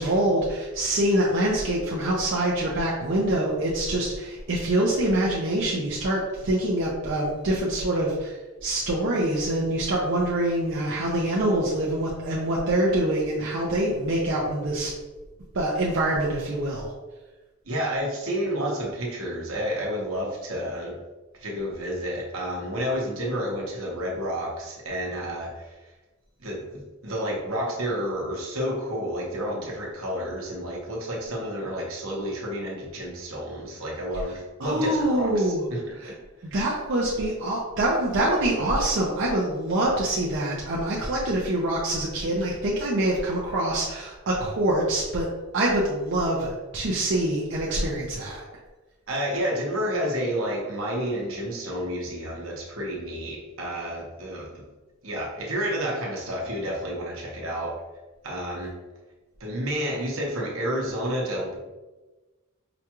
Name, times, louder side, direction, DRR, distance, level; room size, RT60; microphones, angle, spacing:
voice 1, 0.0-8.3 8.6-14.9 15.5-16.9 34.6-35.7 36.4-45.3 45.5-48.4, right 1 dB, 60° right, -5 dB, 0.6 m, -25 dB
voice 2, 17.7-21.0 21.4-25.8 26.4-36.1 49.1-54.6 55.0-57.7 58.2-58.7 59.4-61.7, equal, 80° right, -2 dB, 1.0 m, -30 dB
5.0 x 2.3 x 2.9 m, 1.2 s
head